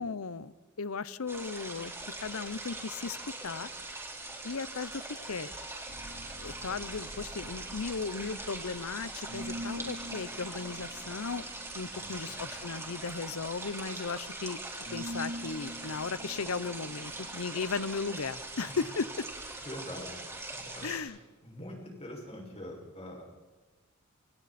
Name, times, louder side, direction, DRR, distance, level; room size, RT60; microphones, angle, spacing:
voice 1, 0.0-1.9 2.2-3.7 4.4-5.0 5.3-5.5 6.4-11.5 11.7-14.6 14.9-19.3 20.8-21.2, left 4 dB, 85° left, 17 dB, 0.8 m, -36 dB
sound 1, 1.3-21.0, right 2 dB, 15° right, 4.2 m, -42 dB
sound 2, 5.9-18.2, equal, 65° right, 3.4 m, -46 dB
voice 2, 11.9-12.5 18.7-18.8 19.6-20.2 20.5-20.9 21.4-23.2, left 1 dB, 30° left, -1 dB, 6.0 m, -44 dB
28.5 x 28.5 x 4.3 m, 1.3 s
head